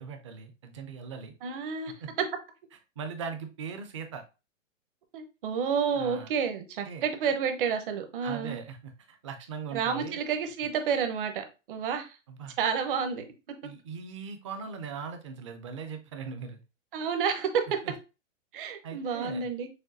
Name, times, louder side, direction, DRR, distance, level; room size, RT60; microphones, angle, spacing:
voice 1, 0.0-1.3 2.0-2.1 3.0-4.2 5.9-6.3 6.8-7.0 8.2-10.2 12.3-12.6 13.6-16.6 17.7-17.9 18.8-19.5, right 5 dB, 25° right, 6 dB, 0.4 m, -40 dB
voice 2, 1.4-1.9 5.1-8.6 9.7-12.2 12.6-13.2 16.9-17.6 18.5-19.7, right 6 dB, 45° right, 7 dB, 0.8 m, -30 dB
6.3 x 2.3 x 2.6 m, 0.30 s
hypercardioid pair, 150°, 39 cm